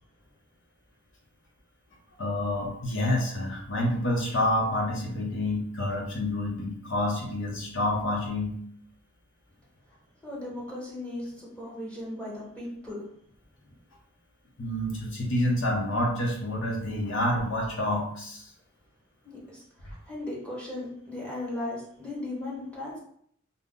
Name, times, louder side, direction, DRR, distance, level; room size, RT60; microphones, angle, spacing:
voice 1, 2.2-8.6 14.6-18.5, left 1 dB, 65° left, 0 dB, 0.8 m, -28 dB
voice 2, 10.2-13.1 19.2-23.0, left 1 dB, 5° left, -6 dB, 0.9 m, -37 dB
2.6 x 2.0 x 3.5 m, 0.65 s
head